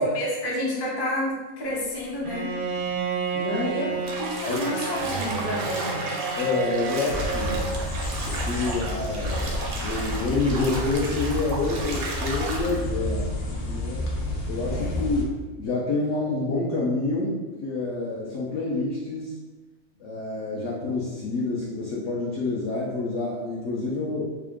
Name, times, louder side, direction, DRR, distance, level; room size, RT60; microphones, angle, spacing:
voice 1, 0.0-2.5 3.5-3.9 4.2-6.0 14.6-15.0, equal, 25° left, -5 dB, 0.5 m, -30 dB
Bowed string instrument, 2.2-7.8, right 4 dB, 75° right, 1.0 m, -30 dB
voice 2, 3.3-3.7 4.5-4.7 6.4-7.8 8.3-9.5 9.8-13.3 13.6-14.0 14.5-17.4 17.6-19.3 20.0-24.3, left 3 dB, 60° left, -6 dB, 0.9 m, -28 dB
Bathtub (filling or washing), 4.0-12.8, right 2 dB, 60° right, 0.6 m, -34 dB
sound 1, 7.1-15.2, left 1 dB, 90° left, 1.2 m, -30 dB
3.7 x 2.4 x 3.5 m, 1.2 s
omnidirectional pair, 1.6 m